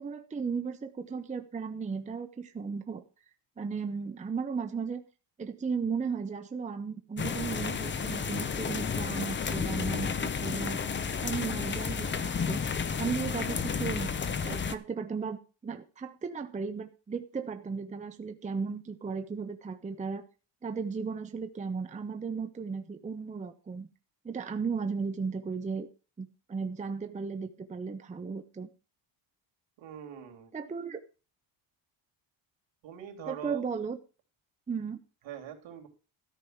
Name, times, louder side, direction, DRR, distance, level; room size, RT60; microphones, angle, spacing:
voice 1, 0.0-3.0 3.6-5.0 5.4-10.9 11.2-12.7 13.0-20.2 20.6-23.9 24.2-25.9 26.2-28.7 30.5-31.0 33.3-34.0 34.7-35.0, right 5 dB, 15° right, 8 dB, 0.7 m, -35 dB
sound 1, 7.2-14.7, left 6 dB, 25° left, 0.7 m, -32 dB
voice 2, 29.8-30.5 32.8-33.7 35.2-35.9, right 9 dB, 65° right, 4 dB, 3.2 m, -43 dB
13.5 x 5.2 x 7.9 m, 0.34 s
cardioid pair, 150°, 48 cm